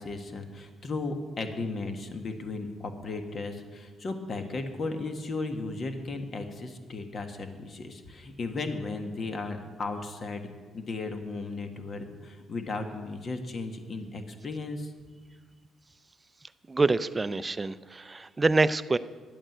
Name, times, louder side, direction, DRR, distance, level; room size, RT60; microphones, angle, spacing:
voice 1, 0.0-14.9, left 3 dB, 45° left, 6 dB, 1.5 m, -35 dB
voice 2, 16.7-19.0, right 3 dB, 25° right, 14 dB, 0.5 m, -26 dB
11.0 x 8.8 x 7.9 m, 1.5 s
cardioid pair, 90°, 0 cm